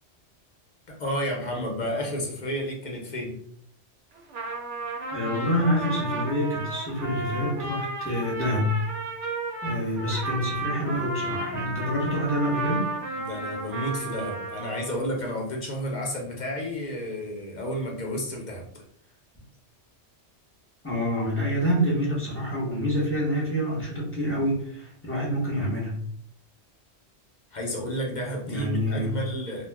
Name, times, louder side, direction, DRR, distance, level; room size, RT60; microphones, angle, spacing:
voice 1, 0.9-3.4 13.1-18.6 27.5-29.7, equal, 45° left, -1 dB, 0.7 m, -31 dB
Trumpet, 4.1-15.0, right 2 dB, 85° right, 1.0 m, -33 dB
voice 2, 5.1-8.8 9.6-12.8 20.8-26.0 28.5-29.2, equal, 15° left, -5 dB, 0.8 m, -27 dB
2.3 x 2.2 x 3.4 m, 0.65 s
omnidirectional pair, 1.2 m